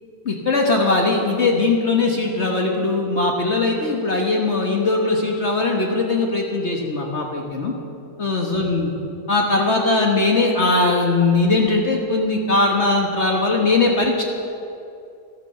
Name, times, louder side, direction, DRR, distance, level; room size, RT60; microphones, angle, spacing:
voice 1, 0.2-7.7 8.2-8.9 9.3-14.2, left 3 dB, 45° left, 1 dB, 1.6 m, -20 dB
13.5 x 12.0 x 6.6 m, 2.6 s
omnidirectional pair, 1.7 m